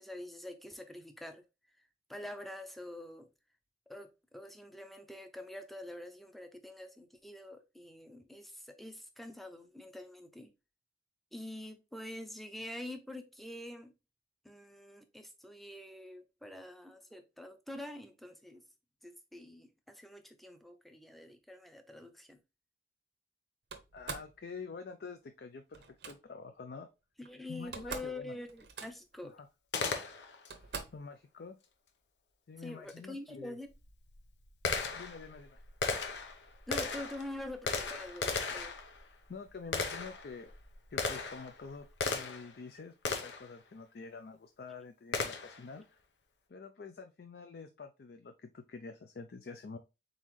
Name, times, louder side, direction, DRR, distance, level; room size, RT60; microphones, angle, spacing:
voice 1, 0.0-1.4 2.1-3.3 3.9-10.5 11.3-13.9 14.4-18.6 19.0-22.4 27.2-29.3 32.6-33.7 36.7-38.7, left 1 dB, ahead, 0.5 m, -46 dB
Slam, 23.7-24.4 25.7-26.2 27.2-27.3 27.6-28.2 28.5-29.2 29.9-30.0 30.5-31.1, right 5 dB, 70° right, 0.7 m, -44 dB
voice 2, 23.9-26.9 27.5-28.3 29.2-29.5 30.9-31.6 32.5-33.6 34.9-35.6 39.3-40.5 40.9-46.0 46.5-49.8, left 4 dB, 60° left, 0.4 m, -47 dB
Gunshot gunfire, 29.7-30.5 32.9-33.0 33.7-42.6 43.0-43.5 45.1-45.7, left 4 dB, 80° left, 0.8 m, -37 dB
4.1 x 3.8 x 3.1 m
head